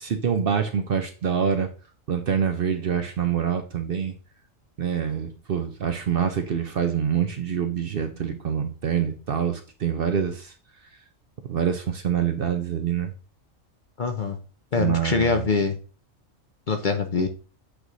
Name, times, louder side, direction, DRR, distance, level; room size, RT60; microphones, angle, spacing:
voice 1, 0.0-1.7 2.1-4.2 4.8-10.5 11.5-13.1 14.8-15.5, right 8 dB, 55° right, 7 dB, 0.7 m, -25 dB
voice 2, 14.0-14.4 14.7-15.8 16.7-17.3, left 5 dB, 45° left, 6 dB, 0.7 m, -24 dB
8.1 x 3.2 x 3.8 m, 0.36 s
omnidirectional pair, 1.4 m